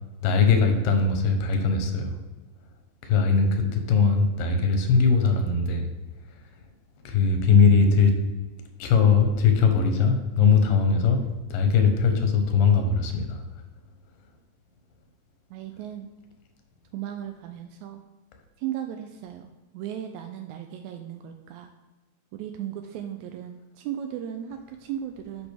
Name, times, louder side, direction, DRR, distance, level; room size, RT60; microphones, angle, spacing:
voice 1, 0.2-2.1 3.0-5.9 7.0-8.2 8.8-11.2 11.5-13.4, left 5 dB, 85° left, 5 dB, 2.7 m, -20 dB
voice 2, 15.5-16.1 16.9-18.0 18.6-21.7 22.3-25.5, right 10 dB, 85° right, 5 dB, 1.6 m, -36 dB
10.0 x 5.1 x 3.4 m, 1.2 s
omnidirectional pair, 3.8 m